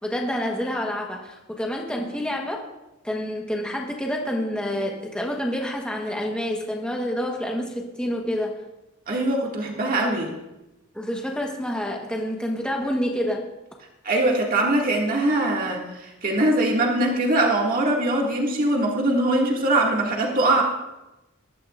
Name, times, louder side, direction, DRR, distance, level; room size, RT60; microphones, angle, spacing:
voice 1, 0.0-2.6 3.0-8.6 10.9-13.5, equal, 5° left, 0 dB, 1.2 m, -28 dB
voice 2, 9.1-10.3 14.0-20.6, right 2 dB, 45° right, -1 dB, 2.1 m, -22 dB
20.5 x 12.0 x 2.5 m, 0.99 s
head